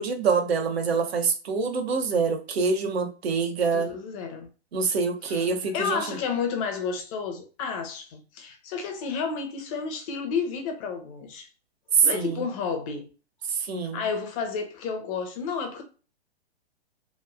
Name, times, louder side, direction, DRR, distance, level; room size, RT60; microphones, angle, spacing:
voice 1, 0.0-3.9 4.7-6.2 11.9-12.4 13.5-14.0, right 5 dB, 65° right, 0.8 m, -25 dB
voice 2, 3.7-4.5 5.2-5.5 5.7-11.5 12.0-13.1 13.9-15.8, left 5 dB, 30° left, 0.7 m, -31 dB
3.1 x 2.2 x 2.3 m
hypercardioid pair, 125°, 33 cm